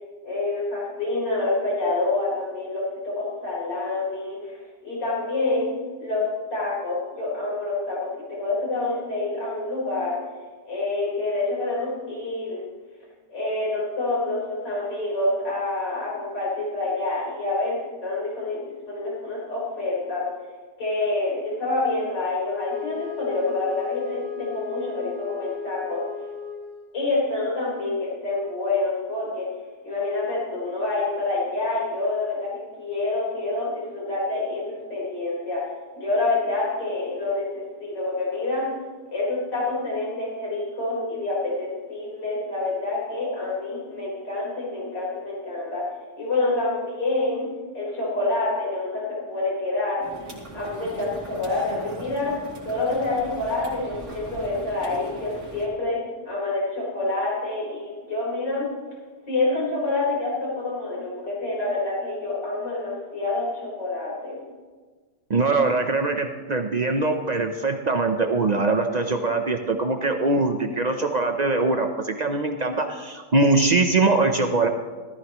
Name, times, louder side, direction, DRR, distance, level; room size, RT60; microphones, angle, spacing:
voice 1, 0.2-5.7 6.0-10.2 10.6-12.6 13.3-20.2 20.8-26.0 26.9-29.5 29.8-35.6 35.9-38.6 39.1-45.8 46.2-47.5 47.7-50.0 50.5-52.3 52.6-56.0 56.2-58.7 59.3-64.4, left 2 dB, 90° left, -6 dB, 5.0 m, -27 dB
Wind instrument woodwind instrument, 22.5-27.1, left 8 dB, 55° left, 3.1 m, -35 dB
sound 1, 50.0-55.7, right 1 dB, 45° right, 3.1 m, -40 dB
voice 2, 65.3-74.7, right 3 dB, 85° right, 5 dB, 0.3 m, -22 dB
18.5 x 14.0 x 3.1 m, 1.4 s
omnidirectional pair, 1.8 m